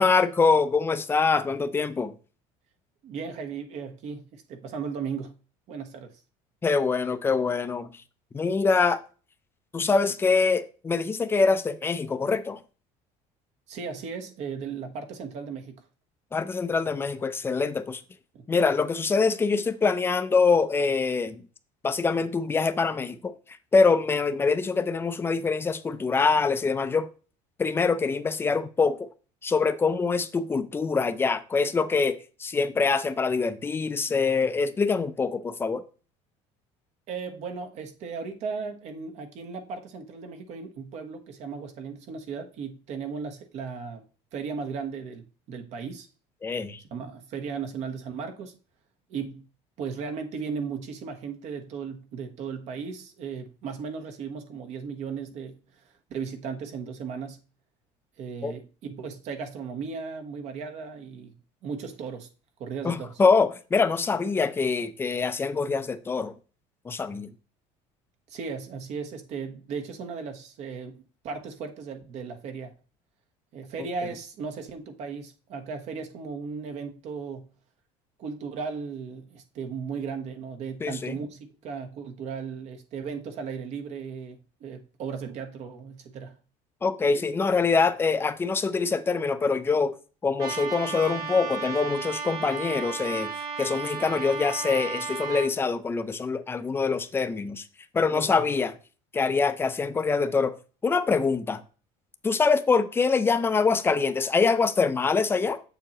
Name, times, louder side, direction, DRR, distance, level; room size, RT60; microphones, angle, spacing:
voice 1, 0.0-2.1 6.6-8.0 8.3-9.0 9.7-12.6 16.3-18.0 18.5-21.4 21.8-23.4 23.7-27.1 27.6-29.1 29.4-35.8 46.4-46.8 58.4-58.5 62.8-66.3 66.8-67.3 80.8-81.1 86.8-89.9 90.2-93.3 93.6-97.6 97.9-98.8 99.1-100.6 100.8-101.6 102.2-105.6, left 4 dB, 15° left, 0.6 m, -24 dB
voice 2, 3.0-5.3 5.7-6.1 13.7-15.8 18.3-18.4 37.1-44.0 44.3-46.1 46.9-48.6 49.1-49.4 49.8-55.6 56.1-57.4 58.2-61.3 61.6-62.3 62.6-63.1 68.3-72.7 73.5-77.5 78.2-86.4 98.1-98.3, right 5 dB, 50° right, 1.2 m, -36 dB
Trumpet, 90.4-95.5, right 6 dB, 85° right, 3.3 m, -34 dB
7.5 x 6.9 x 3.0 m
cardioid pair, 145°, 14 cm